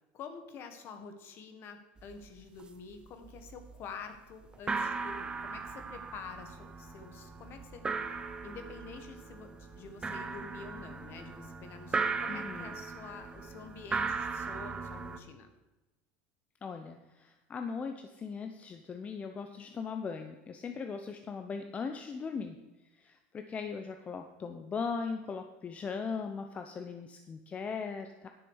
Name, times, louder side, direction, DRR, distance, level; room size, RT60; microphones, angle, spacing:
voice 1, 0.1-15.5, left 5 dB, 45° left, 8 dB, 1.6 m, -48 dB
sound 1, 2.0-2.1 2.4-2.9 3.2-3.8 4.1-4.2 4.5-15.2, right 4 dB, 15° right, 0.9 m, -38 dB
voice 2, 12.3-12.8 16.6-22.6 23.0-28.3, left 5 dB, 25° left, 6 dB, 0.7 m, -39 dB
10.5 x 6.8 x 6.4 m, 1.1 s
supercardioid pair, 120°, 5 cm